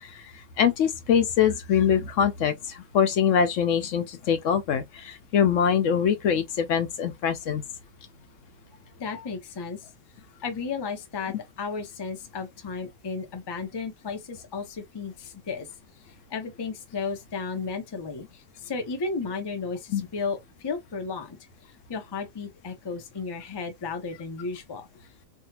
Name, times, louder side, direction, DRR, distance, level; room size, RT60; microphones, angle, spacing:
voice 1, 0.0-7.6 19.9-20.1, left 8 dB, 70° left, 0.9 m, -24 dB
voice 2, 9.0-9.8 10.4-15.7 16.3-21.4 21.9-24.9, left 4 dB, 30° left, 0.5 m, -34 dB
3.4 x 2.3 x 2.8 m
omnidirectional pair, 1.4 m